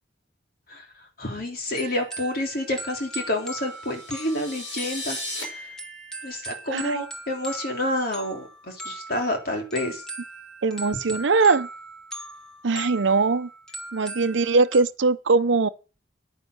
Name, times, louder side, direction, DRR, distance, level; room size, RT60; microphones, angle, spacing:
voice 1, 1.2-5.7 6.2-10.0, left 1 dB, 50° left, 3.2 m, -29 dB
sound 1, 1.8-14.8, right 2 dB, 5° left, 1.8 m, -39 dB
sound 2, 3.5-5.4, left 1 dB, 80° left, 5.9 m, -35 dB
voice 2, 6.7-7.0 10.6-11.7 12.6-13.5 13.9-15.7, right 4 dB, 80° right, 0.7 m, -21 dB
10.0 x 9.7 x 6.5 m
head